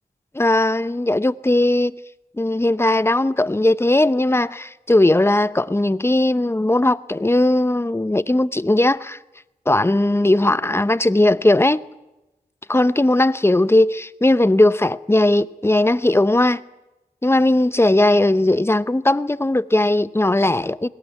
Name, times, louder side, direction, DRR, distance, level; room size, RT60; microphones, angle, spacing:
voice 1, 0.4-1.9 2.4-9.2 9.7-11.8 12.7-16.6 17.2-20.9, left 1 dB, 15° left, 0.7 m, -18 dB
21.5 x 18.0 x 9.4 m
cardioid pair, 60°, 16 cm